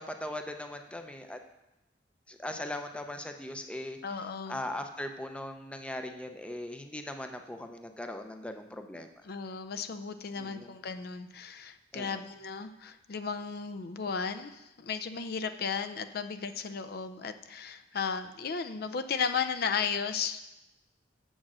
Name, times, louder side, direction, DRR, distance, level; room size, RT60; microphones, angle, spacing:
voice 1, 0.0-1.4 2.3-4.0 4.5-9.1 10.4-10.7 11.9-12.2, left 1 dB, 5° left, 6 dB, 0.5 m, -39 dB
voice 2, 4.0-4.6 9.2-20.4, left 6 dB, 55° left, 10 dB, 0.5 m, -35 dB
7.5 x 6.3 x 6.1 m, 0.98 s
head